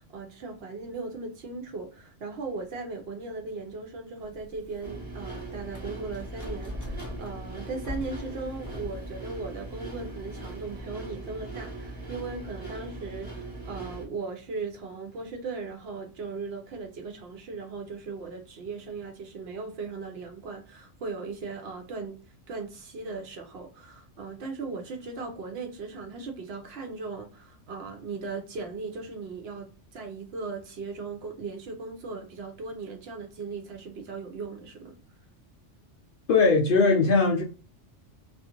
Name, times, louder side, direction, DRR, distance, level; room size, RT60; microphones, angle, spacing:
voice 1, 0.0-22.2 22.5-35.0, right 4 dB, 65° right, 0.8 m, -38 dB
sound 1, 4.2-10.8, left 2 dB, 20° left, 0.6 m, -42 dB
sound 2, 4.8-14.1, right 2 dB, 25° right, 1.0 m, -40 dB
voice 2, 36.3-37.4, left 4 dB, 60° left, 0.6 m, -20 dB
2.4 x 2.4 x 2.8 m
omnidirectional pair, 1.2 m